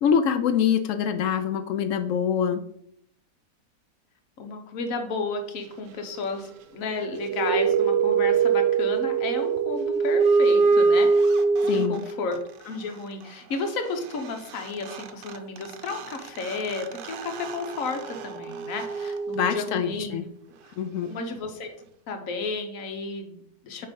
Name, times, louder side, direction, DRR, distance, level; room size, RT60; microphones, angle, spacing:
voice 1, 0.0-2.6 11.7-12.0 19.3-20.3 20.8-21.1, left 7 dB, 75° left, 10 dB, 0.7 m, -24 dB
voice 2, 4.4-12.4 12.6-20.2 21.0-21.7 22.1-23.9, left 4 dB, 55° left, 5 dB, 1.3 m, -33 dB
sound 1, 7.0-12.4 14.3-14.4 14.5-20.0, right 5 dB, 80° right, 1.3 m, -24 dB
8.6 x 3.3 x 5.2 m, 0.72 s
omnidirectional pair, 1.9 m